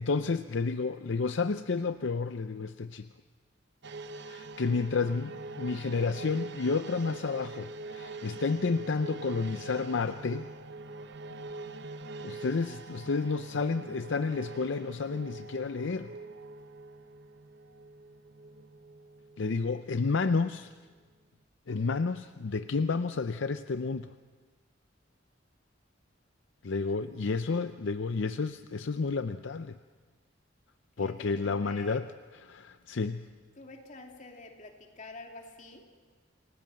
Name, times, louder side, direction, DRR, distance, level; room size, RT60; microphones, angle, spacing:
voice 1, 0.0-3.1 4.2-10.5 12.2-16.1 19.4-20.7 21.7-24.1 26.6-29.8 31.0-32.1 32.3-33.3, left 4 dB, 65° left, 10 dB, 0.6 m, -31 dB
sound 1, 3.8-20.5 20.9-21.0, right 3 dB, 60° right, 0.9 m, -44 dB
voice 2, 31.0-32.0 33.5-35.8, left 2 dB, 40° left, 2 dB, 2.8 m, -47 dB
28.0 x 18.0 x 7.6 m, 1.5 s
head